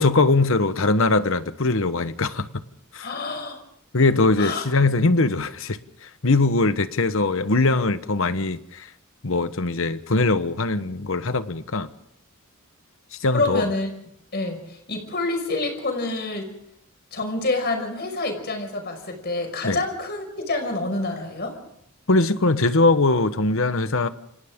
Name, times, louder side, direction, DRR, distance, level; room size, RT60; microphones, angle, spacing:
voice 1, 0.0-2.5 2.9-3.1 3.9-8.9 9.2-11.9 13.2-13.7 19.6-19.8 22.1-24.1, left 3 dB, 65° left, 1.1 m, -21 dB
voice 2, 3.0-3.6 4.4-4.6 13.3-13.9 14.3-16.5 17.1-21.6, left 2 dB, 50° left, 5.6 m, -27 dB
29.0 x 26.5 x 3.7 m
head